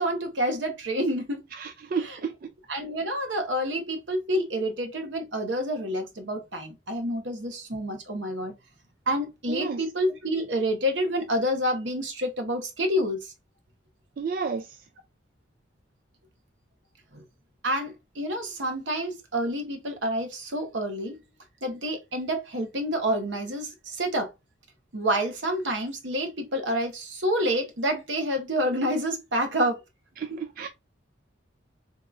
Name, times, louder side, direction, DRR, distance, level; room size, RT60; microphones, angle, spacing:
voice 1, 0.0-1.4 1.9-2.2 2.7-8.5 9.1-13.3 17.1-17.2 17.6-21.2 21.6-24.3 24.9-29.8 30.3-30.4, equal, 75° right, 1.0 m, -28 dB
voice 2, 1.6-2.3 9.5-9.8 14.2-14.7 30.2-30.3 30.6-30.7, right 5 dB, 50° right, 0.3 m, -31 dB
3.5 x 2.9 x 2.4 m
head